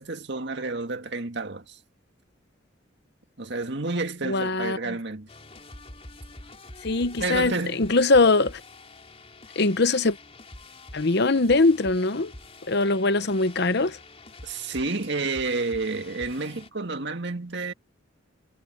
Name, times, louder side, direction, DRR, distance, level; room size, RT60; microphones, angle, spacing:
voice 1, 0.0-1.8 3.4-5.3 7.2-7.8 14.4-17.7, right 3 dB, 60° right, 2.0 m, -30 dB
voice 2, 4.3-4.8 6.8-8.6 9.6-10.2 10.9-12.3 12.7-14.0, left 3 dB, 55° left, 0.9 m, -22 dB
sound 1, 5.3-16.7, left 2 dB, 30° left, 4.1 m, -46 dB
head